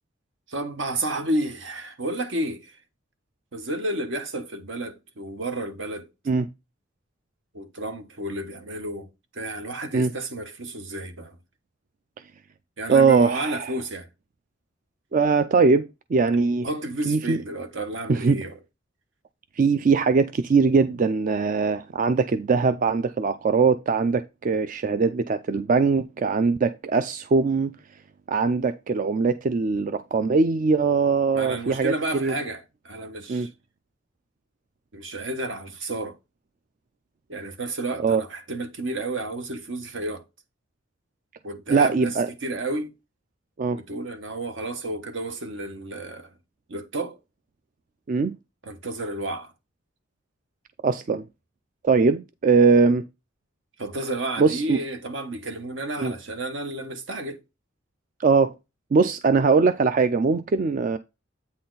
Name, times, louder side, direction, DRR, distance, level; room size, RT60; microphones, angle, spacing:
voice 1, 0.5-2.8 3.5-6.1 7.5-11.4 12.8-14.1 16.3-16.4 16.6-18.6 31.3-33.5 34.9-36.2 37.3-40.2 41.4-42.2 42.4-42.9 43.8-46.3 46.7-47.2 48.6-49.5 53.8-57.4, right 2 dB, 70° right, 1.1 m, -31 dB
voice 2, 12.9-13.7 15.1-16.7 17.1-17.4 18.1-18.4 19.6-27.7 28.3-32.3 33.3-33.5 38.0-38.2 41.7-42.3 43.6-43.8 48.1-48.3 50.8-51.2 51.8-53.0 54.4-54.8 56.0-56.1 58.2-58.5 58.9-61.0, right 4 dB, 40° right, 0.4 m, -21 dB
8.5 x 4.2 x 3.9 m
head